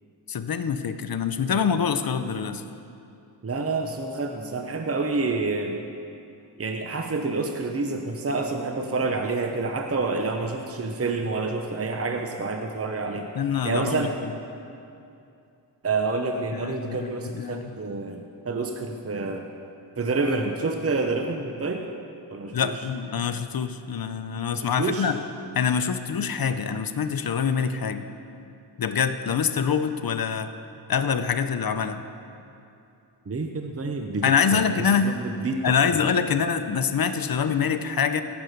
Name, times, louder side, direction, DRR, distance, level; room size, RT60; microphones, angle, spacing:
voice 1, 0.3-2.6 13.3-14.1 16.5-17.7 22.5-25.2 25.5-28.1 28.8-30.5 30.9-32.0 34.2-35.1 35.6-38.2, left 6 dB, 55° left, 9 dB, 0.7 m, -25 dB
voice 2, 3.4-5.8 6.6-13.3 13.6-14.2 15.8-19.5 20.0-22.0 22.3-22.7 24.6-25.1 33.3-34.7 35.0-35.8, right 3 dB, 35° right, 4 dB, 0.9 m, -28 dB
17.0 x 7.1 x 6.6 m, 2.7 s
cardioid pair, 70°, 43 cm